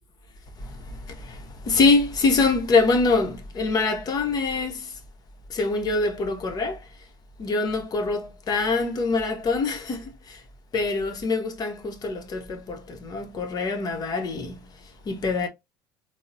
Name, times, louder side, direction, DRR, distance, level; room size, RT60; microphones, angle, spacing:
voice 1, 0.6-5.0 5.5-6.9 7.4-10.4 10.7-14.6 15.1-15.5, left 3 dB, 40° left, 0.8 m, -24 dB
3.9 x 2.0 x 2.5 m
hypercardioid pair, 80°, 10 cm